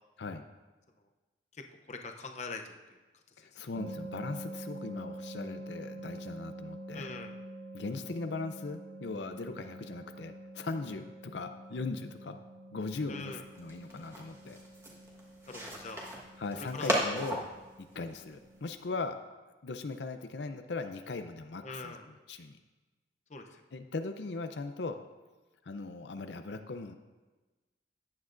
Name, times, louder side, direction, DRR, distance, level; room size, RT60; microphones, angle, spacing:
voice 1, 1.5-3.0 3.4-3.5 6.9-7.3 13.1-13.4 15.5-16.0 16.6-16.9 21.6-22.1 23.3-23.5, left 3 dB, 40° left, 4 dB, 0.7 m, -43 dB
voice 2, 3.4-7.1 7.7-12.4 12.7-14.6 16.4-17.4 17.8-19.2 19.6-21.9 22.3-22.6 23.7-25.0 25.6-26.9, left 3 dB, 75° left, 7 dB, 0.6 m, -39 dB
sound 1, 3.8-18.6, right 1 dB, 75° right, 0.9 m, -47 dB
sound 2, 13.2-18.8, right 1 dB, 15° right, 1.4 m, -37 dB
14.5 x 9.6 x 2.6 m, 1.2 s
head